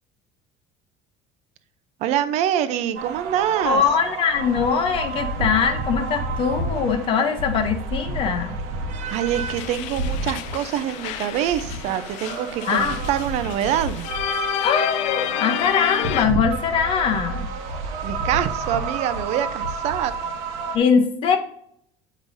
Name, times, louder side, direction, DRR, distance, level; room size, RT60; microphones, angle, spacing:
voice 1, 2.0-3.8 9.1-14.1 18.0-20.1, right 10 dB, 60° right, 12 dB, 0.6 m, -25 dB
sound 1, 2.9-20.8, right 3 dB, 75° right, 1.1 m, -30 dB
voice 2, 3.6-8.6 12.7-13.0 14.6-17.5 20.7-21.4, left 6 dB, 40° left, 6 dB, 0.8 m, -22 dB
sound 2, 9.1-16.3, left 12 dB, 65° left, 0.4 m, -30 dB
7.2 x 5.0 x 2.6 m, 0.71 s
cardioid pair, 140°, 13 cm